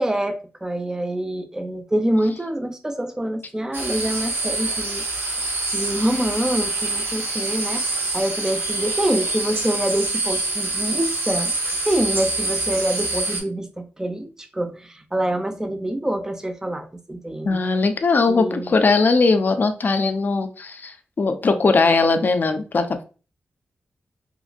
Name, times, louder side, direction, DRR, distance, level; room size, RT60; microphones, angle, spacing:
voice 1, 0.0-5.0 5.7-11.5 11.8-17.6 18.3-18.7, right 1 dB, 15° right, 5 dB, 0.5 m, -26 dB
sound 1, 3.7-13.4, right 2 dB, 75° right, 1.1 m, -26 dB
voice 2, 17.5-23.0, left 3 dB, 50° left, 8 dB, 0.4 m, -19 dB
3.0 x 2.6 x 2.4 m, 0.35 s
wide cardioid pair, 90°, 4 cm